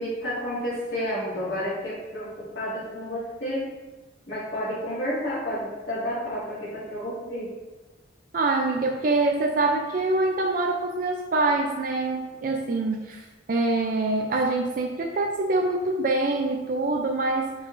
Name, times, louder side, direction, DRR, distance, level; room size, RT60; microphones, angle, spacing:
voice 1, 0.0-3.7 4.3-7.5, equal, 60° left, -11 dB, 1.9 m, -30 dB
voice 2, 8.3-13.2 13.5-17.5, right 2 dB, 45° right, 1 dB, 0.5 m, -25 dB
6.8 x 5.5 x 2.6 m, 1.2 s
head